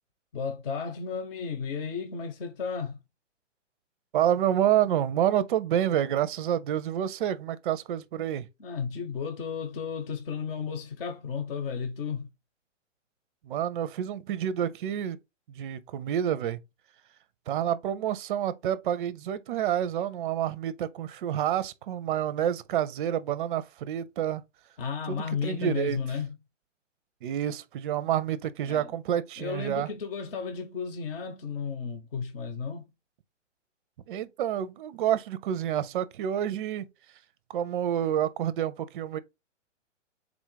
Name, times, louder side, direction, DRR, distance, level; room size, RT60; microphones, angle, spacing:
voice 1, 0.3-3.0 8.6-12.3 24.8-26.3 28.6-28.9 29.4-32.9, left 6 dB, 50° left, 1.1 m, -33 dB
voice 2, 4.1-8.5 13.4-15.2 15.5-16.6 17.5-24.4 25.1-26.0 27.2-29.9 34.1-36.9 37.5-39.2, right 10 dB, 45° right, 0.5 m, -28 dB
3.9 x 2.3 x 4.5 m
hypercardioid pair, 140°, 37 cm